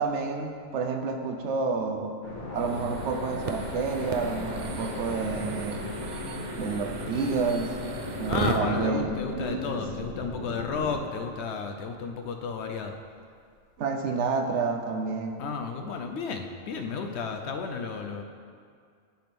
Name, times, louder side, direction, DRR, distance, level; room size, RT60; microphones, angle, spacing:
voice 1, 0.0-2.1 2.5-5.9 6.6-7.7 8.1-9.8 13.8-15.4, right 4 dB, 65° right, 4 dB, 0.9 m, -29 dB
sound 1, 2.2-11.0, left 1 dB, 45° left, 1.7 m, -37 dB
sound 2, 2.6-8.6, right 4 dB, 50° right, 0.6 m, -36 dB
voice 2, 8.3-12.9 15.4-18.2, left 5 dB, 65° left, 5 dB, 0.8 m, -33 dB
10.0 x 3.5 x 5.8 m, 2.2 s
omnidirectional pair, 1.3 m